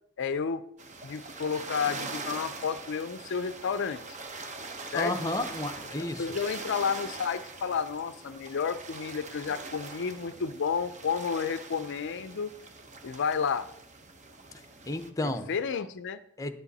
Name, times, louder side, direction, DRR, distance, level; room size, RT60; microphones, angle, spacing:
voice 1, 0.2-0.6 1.0-4.2 4.9-5.1 6.0-12.5 13.0-13.7 15.2-16.2, left 6 dB, 55° left, 0.5 m, -31 dB
sound 1, 0.8-15.1, right 3 dB, 35° right, 1.0 m, -42 dB
voice 2, 4.9-6.3 14.9-15.5 16.4-16.5, left 1 dB, 15° left, 0.7 m, -32 dB
10.5 x 9.9 x 4.1 m
head